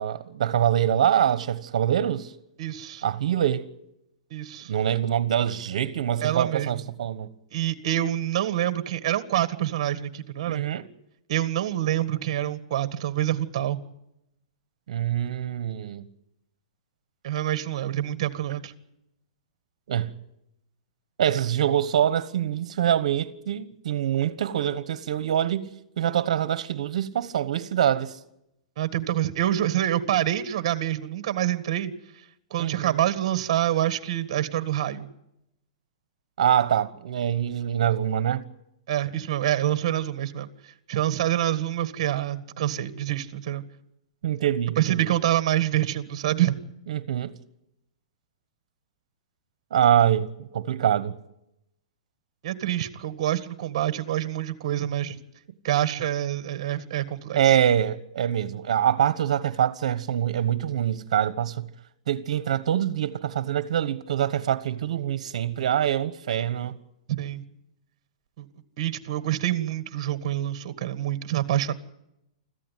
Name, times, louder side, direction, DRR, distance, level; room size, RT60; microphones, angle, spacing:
voice 1, 0.0-2.3 3.0-3.7 4.7-7.3 10.5-10.9 14.9-16.1 19.9-20.1 21.2-28.2 32.6-33.0 36.4-38.4 44.2-45.1 46.9-47.4 49.7-50.3 50.5-51.1 57.4-61.7 62.1-66.7, right 10 dB, 65° right, 1.4 m, -24 dB
voice 2, 2.6-3.0 4.3-4.7 6.2-6.9 7.5-10.6 11.3-13.8 17.2-18.7 28.8-31.9 32.5-35.1 38.9-43.6 44.8-46.5 52.4-55.2 55.6-57.6 67.1-67.4 68.4-68.5 68.8-71.7, right 12 dB, 45° right, 1.8 m, -26 dB
26.0 x 14.5 x 9.3 m
hypercardioid pair, 165°, 4 cm